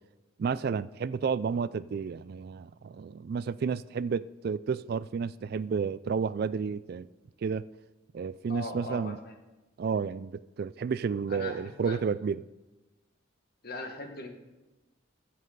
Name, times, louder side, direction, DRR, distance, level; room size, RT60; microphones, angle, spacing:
voice 1, 0.4-7.1 7.4-7.6 8.1-9.2 9.8-12.4, right 6 dB, 50° right, 0.3 m, -31 dB
voice 2, 8.5-9.3 11.3-12.0 13.6-14.3, left 2 dB, 50° left, 1.7 m, -39 dB
22.0 x 7.5 x 4.0 m
head